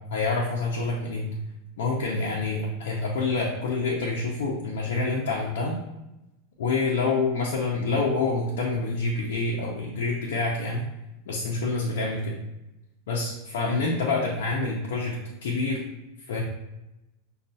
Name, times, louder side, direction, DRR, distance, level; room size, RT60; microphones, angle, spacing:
voice 1, 0.1-1.3 1.8-5.8 6.6-10.8 11.3-12.4 13.1-15.8 16.3-16.4, left 3 dB, 90° left, -3 dB, 0.6 m, -27 dB
6.4 x 2.3 x 2.7 m, 0.97 s
supercardioid pair, 155°, 0 cm